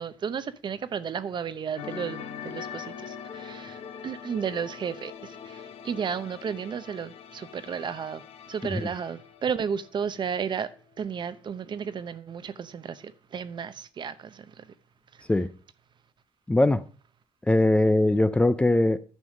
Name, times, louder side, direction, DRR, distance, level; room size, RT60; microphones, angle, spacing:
voice 1, 0.0-5.1 5.4-8.2 8.5-10.7 11.0-14.6, right 7 dB, 45° right, 0.8 m, -33 dB
sound 1, 1.8-10.4 10.7-10.9, left 8 dB, 65° left, 1.0 m, -42 dB
voice 2, 16.5-16.9 17.5-19.0, left 1 dB, 10° left, 0.5 m, -21 dB
10.5 x 5.5 x 6.4 m
cardioid pair, 100°, 11 cm